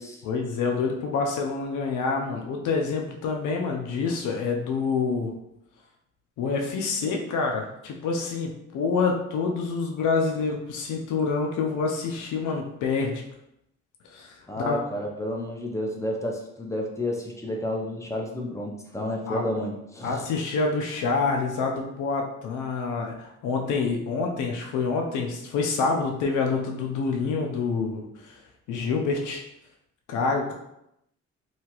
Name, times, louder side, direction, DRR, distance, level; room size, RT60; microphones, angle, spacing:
voice 1, 0.2-5.3 6.4-13.2 14.1-14.8 19.3-19.4 20.0-28.4 28.7-29.4 30.1-30.5, left 4 dB, 80° left, 1 dB, 0.5 m, -27 dB
voice 2, 14.5-20.2, left 1 dB, 10° left, 0 dB, 0.6 m, -31 dB
2.8 x 2.4 x 2.9 m, 0.82 s
cardioid pair, 90°, 30 cm